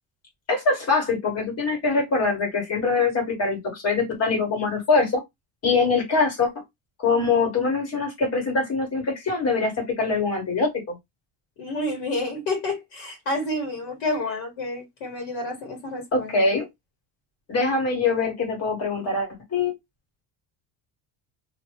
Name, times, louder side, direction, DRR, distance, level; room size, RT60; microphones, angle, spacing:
voice 1, 0.5-5.2 5.6-6.5 7.0-11.0 16.1-16.7 17.5-19.7, left 4 dB, 35° left, 1.6 m, -23 dB
voice 2, 11.6-16.3, left 2 dB, 80° left, 1.4 m, -29 dB
3.0 x 2.6 x 3.1 m
cardioid pair, 160°, 47 cm